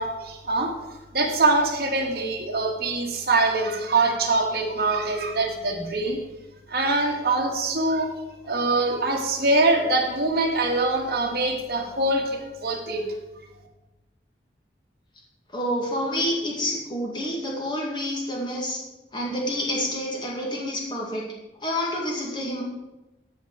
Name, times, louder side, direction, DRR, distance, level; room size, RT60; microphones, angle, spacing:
voice 1, 0.0-6.2 6.7-8.1 8.4-13.0, right 2 dB, 55° right, 0 dB, 1.7 m, -24 dB
voice 2, 15.5-18.8 19.1-21.2 21.6-22.6, equal, 25° left, -2 dB, 2.0 m, -28 dB
14.0 x 4.8 x 4.8 m, 1.0 s
head